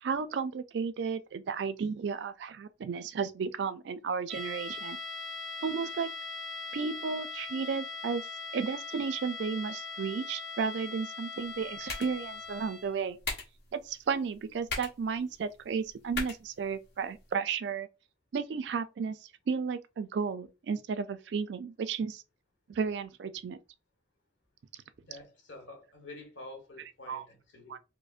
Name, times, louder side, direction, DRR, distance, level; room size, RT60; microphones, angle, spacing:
voice 1, 0.0-5.0 5.6-6.1 6.7-8.2 8.5-13.2 13.7-17.9 18.3-19.2 19.5-22.2 22.7-23.6 26.8-27.3 27.7-27.8, right 5 dB, 70° right, 0.3 m, -33 dB
sound 1, 4.3-13.0, left 4 dB, ahead, 0.4 m, -41 dB
sound 2, 11.3-17.3, left 3 dB, 60° left, 1.1 m, -42 dB
voice 2, 25.0-27.8, left 2 dB, 90° left, 1.2 m, -48 dB
4.8 x 2.0 x 2.4 m
head